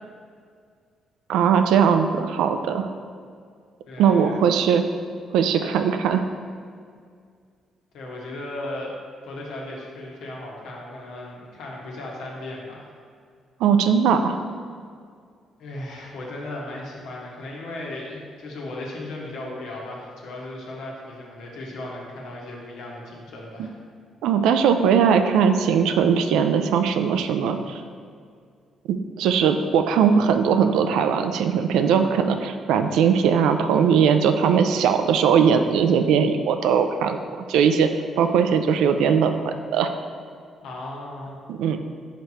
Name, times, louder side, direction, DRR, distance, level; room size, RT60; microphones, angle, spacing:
voice 1, 1.3-2.9 4.0-4.8 5.3-6.2 13.6-14.4 23.6-23.7 24.2-27.8 28.9-37.2 37.5-37.9 38.2-39.9 41.5-41.8, right 7 dB, 90° right, 7 dB, 0.4 m, -20 dB
voice 2, 3.9-4.4 7.9-8.9 9.2-12.8 15.6-23.8 40.6-41.4, left 2 dB, 80° left, -2 dB, 1.2 m, -36 dB
5.1 x 4.5 x 4.2 m, 2.1 s
cardioid pair, 90°, 0 cm